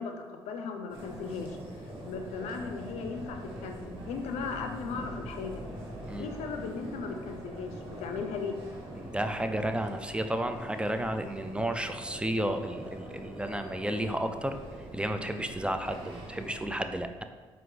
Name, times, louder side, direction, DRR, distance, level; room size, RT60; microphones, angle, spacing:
voice 1, 0.0-1.6 2.1-5.6 6.2-8.6, left 5 dB, 80° left, 5 dB, 0.5 m, -37 dB
sound 1, 0.9-16.6, right 1 dB, 55° right, 1.3 m, -43 dB
voice 2, 9.0-14.6 14.9-17.2, right 1 dB, 10° right, 7 dB, 0.3 m, -32 dB
4.4 x 2.5 x 3.7 m, 1.4 s
supercardioid pair, 60°, 11 cm